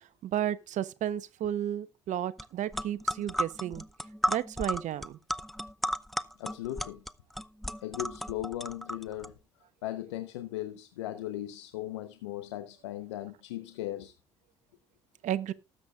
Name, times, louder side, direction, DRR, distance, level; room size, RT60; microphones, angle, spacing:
voice 1, 0.2-3.8 4.3-5.2 15.2-15.5, right 11 dB, 55° right, 1.0 m, -32 dB
sound 1, 2.4-2.5 2.7-9.3, equal, ahead, 0.7 m, -34 dB
voice 2, 6.4-7.0 7.8-9.3 9.8-14.1, left 13 dB, 85° left, 0.9 m, -37 dB
19.0 x 7.9 x 2.4 m
hypercardioid pair, 55°, 15 cm